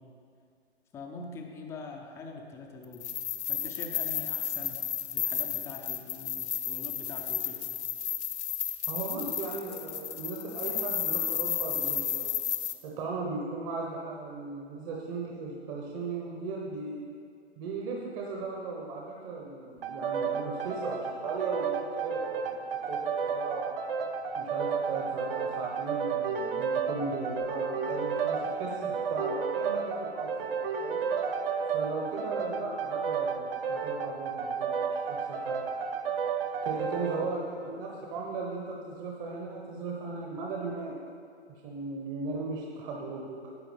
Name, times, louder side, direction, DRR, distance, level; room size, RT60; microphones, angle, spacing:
voice 1, 0.9-3.0 3.5-4.8 5.1-7.6 36.9-37.3, left 4 dB, 10° left, 2 dB, 0.5 m, -43 dB
sound 1, 2.9-12.7, left 9 dB, 75° left, 0.9 m, -33 dB
voice 2, 8.9-12.3 12.8-17.0 17.6-23.8 24.3-31.0 31.7-35.6 36.6-41.0 41.5-43.5, right 4 dB, 30° right, -1 dB, 1.0 m, -37 dB
sound 2, 19.8-37.2, right 6 dB, 55° right, 0.9 m, -32 dB
11.0 x 7.3 x 5.2 m, 2.3 s
hypercardioid pair, 140°, 34 cm